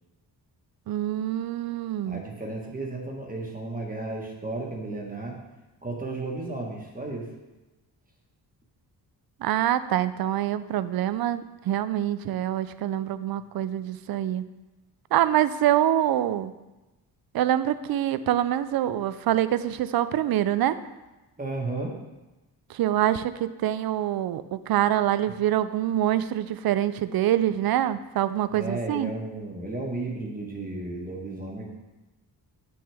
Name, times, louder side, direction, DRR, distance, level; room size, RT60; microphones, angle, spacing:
voice 1, 0.9-2.2 9.4-14.4 15.1-16.5 17.3-20.8 22.7-29.1, right 12 dB, 65° right, 14 dB, 0.5 m, -25 dB
voice 2, 2.1-5.4 5.8-7.3 21.4-22.0 28.5-31.7, right 2 dB, 20° right, -1 dB, 1.5 m, -33 dB
7.8 x 6.3 x 3.5 m, 1.1 s
cardioid pair, 95°, 40 cm